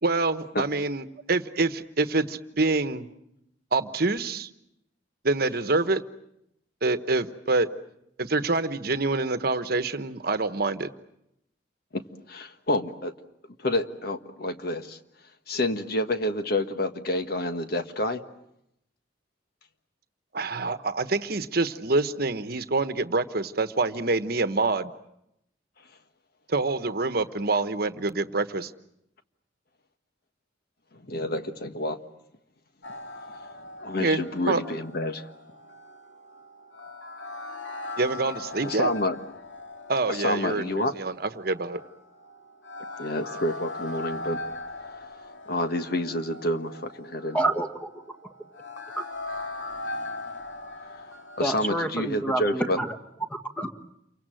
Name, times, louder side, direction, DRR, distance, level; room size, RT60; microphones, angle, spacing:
voice 1, 0.0-3.1 3.7-4.5 5.2-6.0 6.8-7.7 8.2-10.9 20.3-24.9 26.5-28.7 34.0-34.2 34.5-34.6 38.0-38.9 39.9-41.8, right 3 dB, 55° right, 11 dB, 1.2 m, -26 dB
voice 2, 11.9-13.1 13.6-15.0 15.5-18.2 30.9-32.0 33.8-35.3 38.6-39.2 40.1-40.9 43.0-44.4 45.5-47.4 51.4-52.8, left 1 dB, 55° left, 8 dB, 1.5 m, -28 dB
sound 1, 32.8-51.6, left 2 dB, 80° left, 2.5 m, -40 dB
voice 3, 47.3-47.9 51.4-52.9 53.3-53.8, right 2 dB, 10° left, 6 dB, 1.6 m, -28 dB
28.5 x 24.0 x 7.7 m, 0.79 s
head